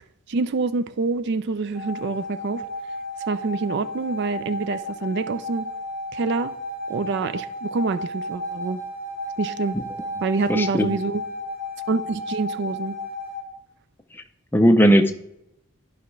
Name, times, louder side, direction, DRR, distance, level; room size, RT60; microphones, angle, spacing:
voice 1, 0.3-2.6 3.3-5.7 6.1-6.5 6.9-8.8 9.4-9.8 10.2-11.2 11.9-13.0, right 4 dB, 55° right, 0.4 m, -26 dB
sound 1, 1.7-13.4, left 1 dB, 85° right, 3.4 m, -33 dB
voice 2, 10.5-10.9 14.5-15.1, equal, 10° left, 0.5 m, -17 dB
11.0 x 5.6 x 3.2 m
head